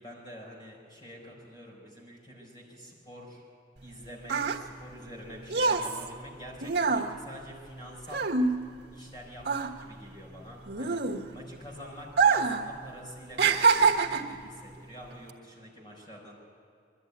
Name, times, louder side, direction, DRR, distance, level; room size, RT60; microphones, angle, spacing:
voice 1, 0.0-3.4 3.8-8.2 8.9-11.0 11.3-16.4, equal, 25° left, -2 dB, 4.5 m, -47 dB
sound 1, 3.8-9.1 9.4-11.6 12.1-12.7 12.9-14.4 15.1-15.3, right 4 dB, 80° right, 1.4 m, -26 dB
22.5 x 13.0 x 9.5 m, 2.3 s
head